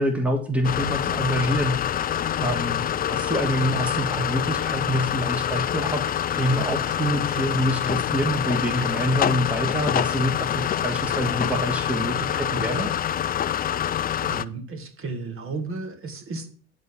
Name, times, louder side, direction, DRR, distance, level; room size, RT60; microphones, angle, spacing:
voice 1, 0.0-1.8 2.4-2.8 3.1-6.0 6.3-12.9, equal, 5° right, 4 dB, 1.5 m, -26 dB
sound 1, 0.6-14.4, left 10 dB, 30° left, 0.4 m, -26 dB
voice 2, 14.2-16.5, right 3 dB, 40° right, 6 dB, 2.1 m, -33 dB
10.5 x 4.2 x 7.3 m, 0.43 s
supercardioid pair, 90°, 32 cm